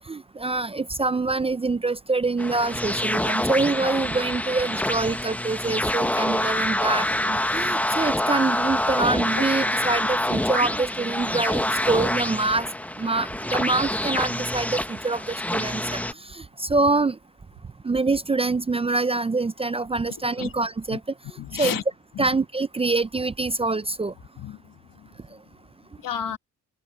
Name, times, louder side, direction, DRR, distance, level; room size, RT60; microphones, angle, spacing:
voice 1, 0.0-12.7 13.0-16.0 16.3-17.2 17.8-21.0 21.6-21.8 22.2-24.1, right 3 dB, 20° right, 0.4 m, -25 dB
sound 1, 2.4-16.1, left 1 dB, 5° left, 0.8 m, -26 dB
voice 2, 21.4-21.8 22.1-22.3 24.4-25.1 26.0-26.4, left 9 dB, 80° left, 1.7 m, -32 dB
open air
cardioid pair, 115°, 33 cm